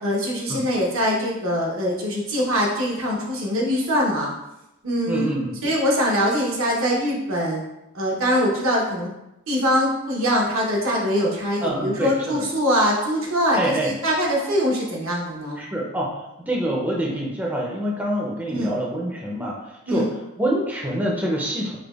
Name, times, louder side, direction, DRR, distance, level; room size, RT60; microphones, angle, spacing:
voice 1, 0.0-4.3 4.8-5.3 5.6-7.6 7.9-9.1 9.5-15.6 18.5-18.7 19.9-20.0, equal, 85° right, -2 dB, 0.9 m, -23 dB
voice 2, 5.1-5.6 11.6-12.5 13.6-13.9 15.6-16.1 16.5-21.8, right 1 dB, 10° right, -2 dB, 0.4 m, -26 dB
4.9 x 2.2 x 2.3 m, 0.90 s
head